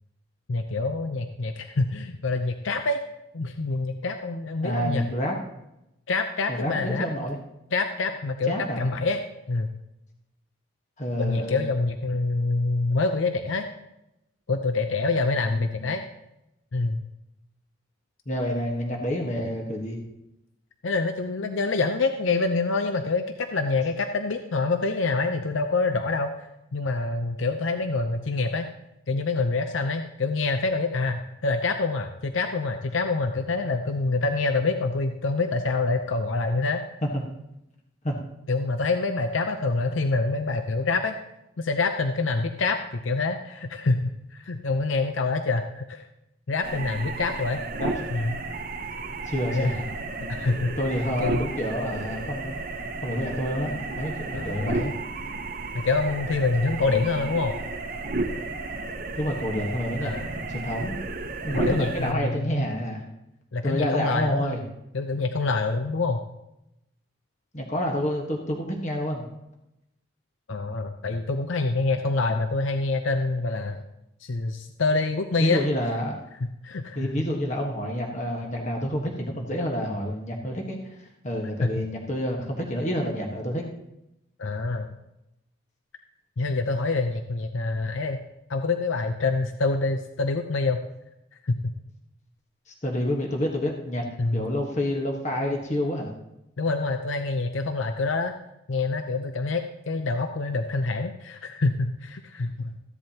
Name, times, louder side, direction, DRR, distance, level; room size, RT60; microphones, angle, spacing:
voice 1, 0.5-3.0 3.3-5.1 6.1-7.1 7.7-9.2 9.5-9.7 11.2-13.7 14.5-16.0 16.7-17.0 20.8-28.7 29.1-36.8 38.5-41.1 41.6-46.1 46.5-47.6 48.1-48.4 49.5-49.7 50.3-50.8 51.2-51.4 54.3-54.8 55.7-57.6 60.0-60.3 61.5-62.7 63.5-64.6 64.9-66.2 70.5-73.8 74.2-75.6 76.6-77.1 81.6-81.9 84.4-84.9 86.4-88.2 88.5-90.8 91.4-91.7 94.2-94.4 96.6-98.3 98.7-102.8, left 3 dB, 80° left, 6 dB, 0.7 m, -26 dB
voice 2, 4.6-5.4 6.5-7.4 8.5-8.8 11.0-11.6 15.8-15.9 18.3-20.0 37.1-37.2 38.0-38.2 47.6-47.9 49.2-49.8 50.8-52.5 53.0-54.9 56.8-57.0 59.1-60.1 60.5-60.9 61.4-63.0 63.6-64.6 67.5-69.4 75.4-76.2 76.9-83.7 92.7-94.0 94.3-96.1, equal, 35° left, 0 dB, 1.3 m, -28 dB
sound 1, 46.6-62.1, right 3 dB, 45° right, 0.8 m, -33 dB
15.0 x 11.0 x 2.9 m, 0.88 s
head